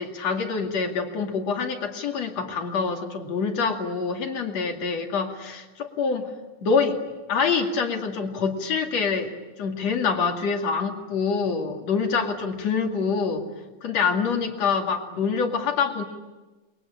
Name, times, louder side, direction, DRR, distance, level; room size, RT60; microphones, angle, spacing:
voice 1, 0.0-6.3 6.6-7.0 7.3-9.3 9.6-13.4 13.8-16.0, left 5 dB, 55° left, 3 dB, 3.5 m, -25 dB
29.5 x 22.5 x 8.9 m, 1.2 s
omnidirectional pair, 3.7 m